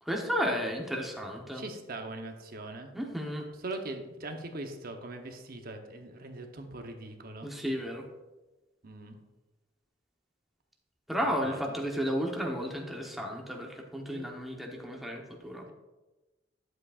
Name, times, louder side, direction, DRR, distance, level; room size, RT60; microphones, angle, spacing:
voice 1, 0.0-1.7 2.9-3.4 7.4-8.1 11.1-15.6, equal, ahead, 0 dB, 1.0 m, -33 dB
voice 2, 1.5-2.9 3.6-7.5 8.8-9.2 11.4-11.8 14.1-14.3, right 2 dB, 50° right, 5 dB, 0.9 m, -41 dB
11.0 x 7.7 x 2.5 m, 1.1 s
head